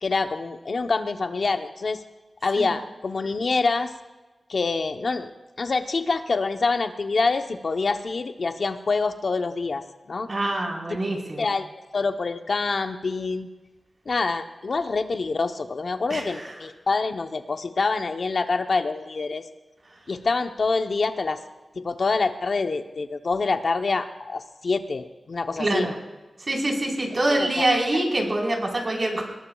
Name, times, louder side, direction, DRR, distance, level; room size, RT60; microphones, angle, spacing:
voice 1, 0.0-2.0 2.4-3.9 4.5-5.3 5.6-10.3 11.4-11.7 11.9-13.5 14.1-19.4 20.1-21.4 21.8-25.9 27.3-27.8, left 4 dB, 60° left, 7 dB, 0.8 m, -26 dB
voice 2, 10.3-11.5 16.1-16.5 25.6-25.9 26.5-29.2, right 1 dB, 45° right, 0 dB, 4.2 m, -25 dB
20.0 x 19.5 x 2.3 m, 1.2 s
wide cardioid pair, 85°, 0 cm